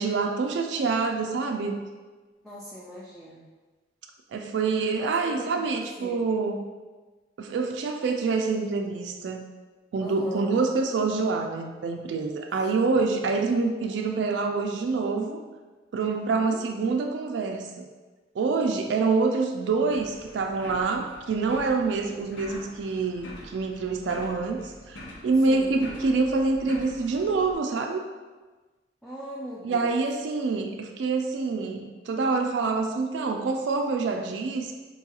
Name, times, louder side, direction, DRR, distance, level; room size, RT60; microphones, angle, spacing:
voice 1, 0.0-1.8 4.3-6.7 7.4-9.5 9.9-15.4 15.9-17.9 18.3-28.0 29.6-34.7, right 4 dB, 85° right, 4 dB, 0.3 m, -26 dB
voice 2, 2.4-3.5 5.0-6.2 10.0-10.6 12.7-13.1 16.0-16.6 21.8-21.9 25.5-25.7 29.0-30.0, equal, ahead, -6 dB, 0.3 m, -41 dB
sound 1, 19.9-27.5, left 1 dB, 90° left, 0.6 m, -45 dB
4.5 x 2.3 x 2.8 m, 1.3 s
head